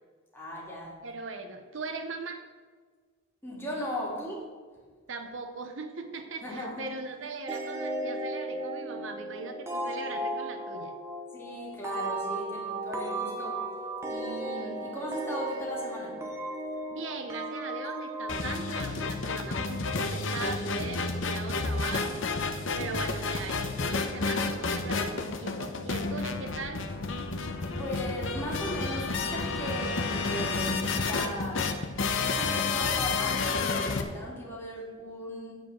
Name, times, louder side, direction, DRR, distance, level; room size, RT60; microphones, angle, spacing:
voice 1, 0.3-1.0 3.4-4.4 6.4-6.9 11.3-13.6 14.1-16.2 27.8-31.7 32.0-35.5, equal, 10° left, -5 dB, 2.5 m, -37 dB
voice 2, 1.0-2.4 5.1-11.0 16.9-26.8, right 4 dB, 65° right, 7 dB, 0.7 m, -39 dB
sound 1, 7.5-19.9, right 1 dB, 15° right, 0.9 m, -36 dB
sound 2, 18.3-34.0, left 4 dB, 65° left, 0.8 m, -30 dB
8.9 x 4.7 x 7.6 m, 1.5 s
head